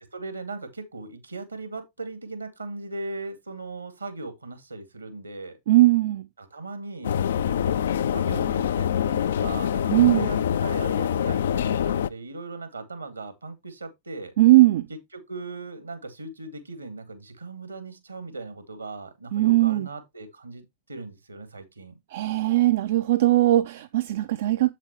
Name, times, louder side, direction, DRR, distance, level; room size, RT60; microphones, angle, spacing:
voice 1, 0.1-5.6 6.4-14.3 15.1-22.0, right 3 dB, 80° right, 2.0 m, -38 dB
voice 2, 5.7-6.3 9.9-10.3 14.4-14.9 19.3-19.9 22.1-24.7, right 17 dB, 55° right, 0.5 m, -19 dB
sound 1, 7.0-12.1, left 9 dB, 65° left, 0.4 m, -25 dB
7.9 x 7.3 x 3.0 m
figure-of-eight pair, 90°, 0 cm